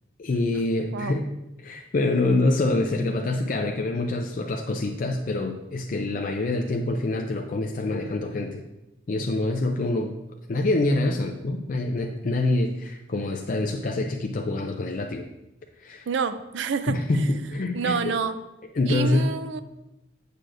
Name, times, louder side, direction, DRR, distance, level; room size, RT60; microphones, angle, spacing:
voice 1, 0.2-1.2 1.6-8.6 9.1-10.1 10.5-15.3 15.8-16.1 16.9-18.1 18.7-19.3, left 2 dB, 45° left, 3 dB, 0.4 m, -26 dB
voice 2, 16.1-17.4 17.7-18.4 18.9-19.6, right 5 dB, 65° right, 11 dB, 0.4 m, -28 dB
7.6 x 6.6 x 2.5 m, 0.97 s
head